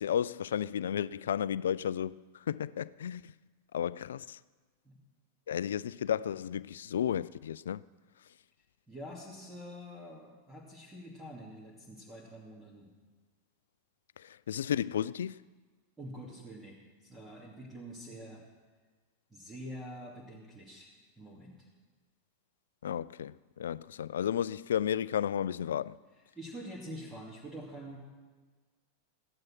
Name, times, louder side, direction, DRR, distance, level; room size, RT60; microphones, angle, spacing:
voice 1, 0.0-2.1 2.5-3.3 3.7-4.4 5.5-7.8 14.2-15.4 22.8-26.0, left 9 dB, 65° left, 0.3 m, -33 dB
voice 2, 8.9-12.9 16.0-18.4 19.3-20.9 21.2-21.7 26.3-28.0, equal, 10° right, 2.6 m, -46 dB
15.0 x 10.5 x 6.1 m
figure-of-eight pair, 90°, 0 cm